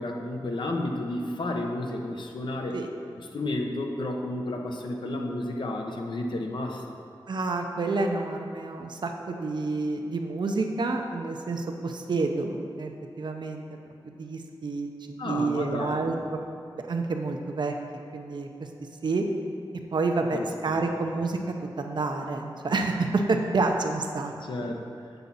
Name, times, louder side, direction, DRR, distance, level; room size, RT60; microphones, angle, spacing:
voice 1, 0.0-2.8 3.2-7.0 15.2-16.1 20.3-20.9 24.4-24.9, left 1 dB, 65° left, 2 dB, 0.8 m, -32 dB
voice 2, 7.3-12.9 13.2-13.7 14.1-16.4 16.9-17.8 18.1-18.5 19.0-19.2 19.9-21.4 21.8-24.3, right 3 dB, 60° right, 3 dB, 0.6 m, -28 dB
7.9 x 5.8 x 4.1 m, 2.4 s
wide cardioid pair, 125°, 9 cm